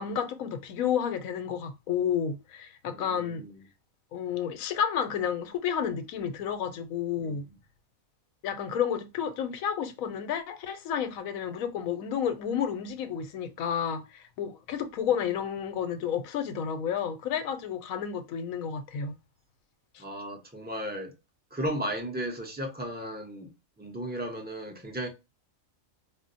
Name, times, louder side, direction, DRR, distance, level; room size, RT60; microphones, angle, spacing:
voice 1, 0.0-3.4 4.1-7.5 8.4-19.1 19.9-20.0, left 8 dB, 90° left, 1.1 m, -31 dB
voice 2, 2.9-3.6 7.2-7.4 20.0-21.1 21.5-23.5 23.8-25.1, right 1 dB, 10° right, 0.4 m, -35 dB
4.2 x 2.0 x 2.5 m
omnidirectional pair, 1.4 m